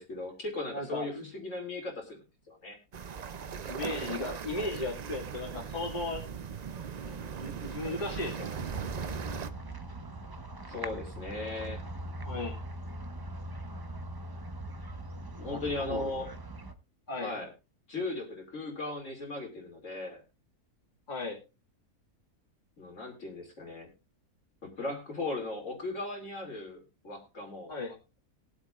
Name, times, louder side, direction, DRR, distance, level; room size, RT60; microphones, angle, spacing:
voice 1, 0.0-2.8 10.7-11.8 15.4-16.3 17.1-17.5 17.9-20.2 22.8-23.9 24.6-27.7, left 2 dB, 55° left, 1 dB, 3.2 m, -37 dB
voice 2, 0.7-1.2 3.7-6.2 7.1-8.8 12.2-12.6 15.4-16.1 17.1-17.4 21.1-21.4 27.7-28.0, left 2 dB, 30° left, -1 dB, 2.3 m, -36 dB
sound 1, 2.9-9.5, right 6 dB, 75° right, 0.3 m, -39 dB
sound 2, 8.6-16.7, right 1 dB, 20° right, 0.6 m, -41 dB
21.5 x 8.1 x 2.4 m, 0.28 s
omnidirectional pair, 1.6 m